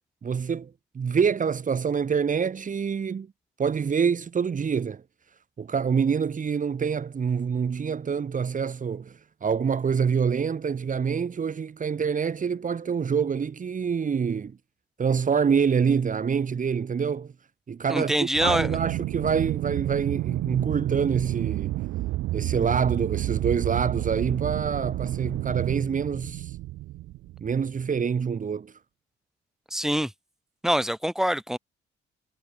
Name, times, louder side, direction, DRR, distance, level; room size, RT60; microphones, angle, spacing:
voice 1, 0.2-3.3 3.6-5.0 5.6-14.5 15.0-17.3 17.7-21.8 22.3-26.6 27.4-28.7, right 6 dB, 40° right, 2.3 m, -26 dB
voice 2, 17.9-18.8 29.7-30.1 30.6-31.6, equal, ahead, 5.1 m, -25 dB
Aircraft, 18.3-27.8, right 17 dB, 85° right, 0.8 m, -30 dB
cardioid pair, 90°, 20 cm